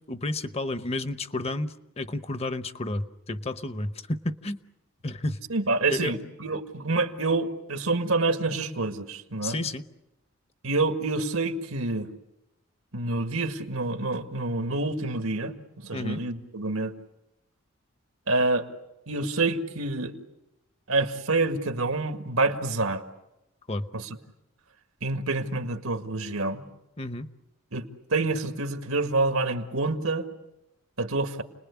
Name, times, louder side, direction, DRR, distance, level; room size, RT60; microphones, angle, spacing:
voice 1, 0.1-4.6 5.0-5.4 5.9-6.1 9.4-9.8 15.9-16.2 23.7-23.9 27.0-27.3, left 2 dB, 30° left, 12 dB, 0.9 m, -31 dB
voice 2, 5.5-9.6 10.6-12.1 12.9-15.6 15.8-16.9 18.3-18.7 19.1-20.2 20.9-23.0 23.9-24.2 25.0-26.6 27.7-30.3 31.0-31.4, right 2 dB, 85° right, 7 dB, 2.0 m, -27 dB
30.0 x 20.5 x 8.5 m, 0.94 s
head